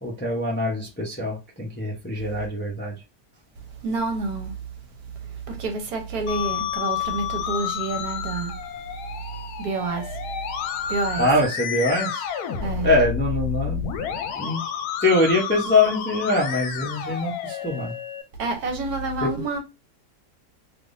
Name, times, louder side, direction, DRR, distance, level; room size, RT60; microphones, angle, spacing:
voice 1, 0.0-3.0 11.2-12.3 12.8-13.8 14.4-14.6 15.0-17.9, left 2 dB, 10° left, 0.5 m, -23 dB
voice 2, 3.7-4.6 5.2-8.6 9.3-10.3 10.7-11.3 12.6-12.9 18.4-19.6, right 3 dB, 70° right, 1.3 m, -28 dB
Musical instrument, 6.3-18.2, left 8 dB, 75° left, 1.1 m, -30 dB
3.4 x 2.9 x 2.6 m
omnidirectional pair, 1.7 m